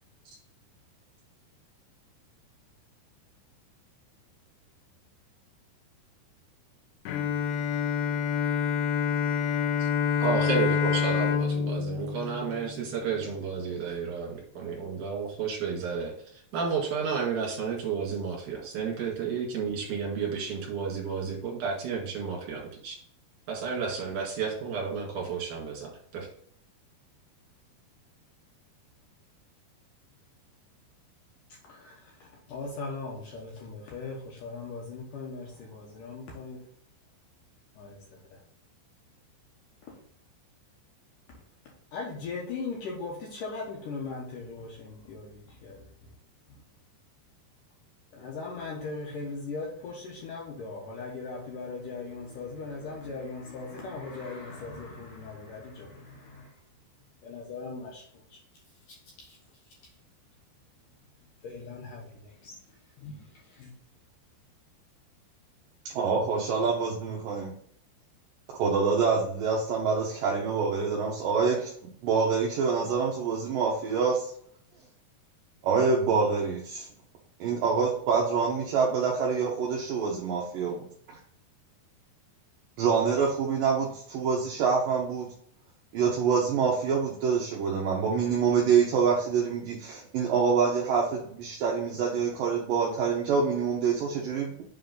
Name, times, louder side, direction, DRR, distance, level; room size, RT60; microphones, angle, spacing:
Bowed string instrument, 7.1-13.2, left 7 dB, 85° left, 2.7 m, -27 dB
voice 1, 10.2-16.1 16.5-23.0 23.5-26.3, right 5 dB, 55° right, 3.0 m, -32 dB
voice 2, 31.7-36.6 37.8-38.0 38.3-38.4 41.7-46.1 48.1-56.6 57.2-58.0 58.3-58.4 58.9-59.4 61.4-62.6 63.0-63.7, left 4 dB, 70° left, 2.1 m, -39 dB
voice 3, 65.9-67.5 68.6-74.3 75.6-76.9 77.4-80.9 82.8-85.3 85.9-94.6, right 5 dB, 75° right, 2.0 m, -26 dB
7.8 x 3.7 x 3.9 m
omnidirectional pair, 5.1 m